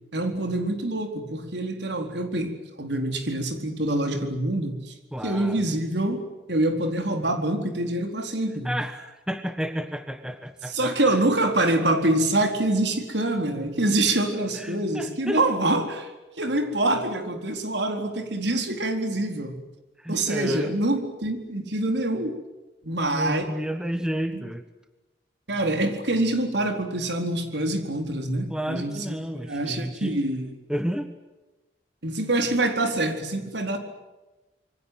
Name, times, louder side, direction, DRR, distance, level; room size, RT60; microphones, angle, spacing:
voice 1, 0.1-2.5 2.8-4.9 5.2-6.2 6.5-8.8 10.7-16.1 16.4-19.6 20.1-22.4 22.8-23.5 24.3-24.4 25.5-30.5 32.0-33.8, right 1 dB, 75° right, 5 dB, 4.2 m, -25 dB
voice 2, 5.1-5.7 8.5-11.2 14.5-15.4 20.0-20.7 23.1-24.6 28.5-30.1 30.7-31.1, equal, 5° right, 8 dB, 1.3 m, -31 dB
27.5 x 23.5 x 7.9 m, 1.1 s
head